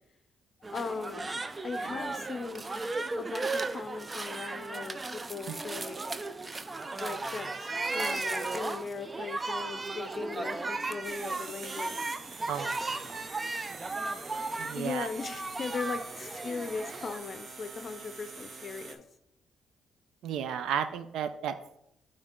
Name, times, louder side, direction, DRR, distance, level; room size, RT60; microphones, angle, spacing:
sound 1, 0.6-17.2, right 3 dB, 25° right, 0.4 m, -36 dB
voice 1, 0.7-2.6 3.1-6.0 7.0-12.0 14.8-19.0, left 4 dB, 45° left, 10 dB, 0.6 m, -38 dB
sound 2, 11.0-19.0, right 4 dB, 45° right, 0.9 m, -45 dB
voice 2, 12.5-13.3 14.6-15.1 20.2-21.6, right 8 dB, 80° right, 11 dB, 0.5 m, -34 dB
8.0 x 3.3 x 3.7 m, 0.78 s
cardioid pair, 90°, 0 cm